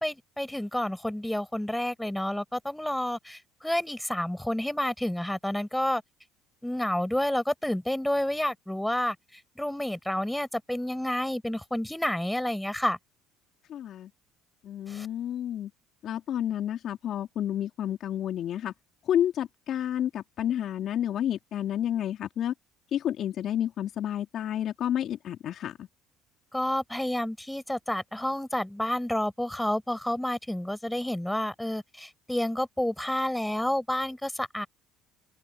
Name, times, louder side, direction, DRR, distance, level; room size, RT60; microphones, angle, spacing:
voice 1, 0.0-6.0 6.6-13.0 14.9-15.1 26.5-34.7, left 1 dB, 5° left, 4.8 m, -30 dB
voice 2, 13.7-14.1 14.6-15.7 16.0-18.7 19.1-22.5 22.9-25.9, left 10 dB, 55° left, 3.5 m, -30 dB
hypercardioid pair, 75°, 0 cm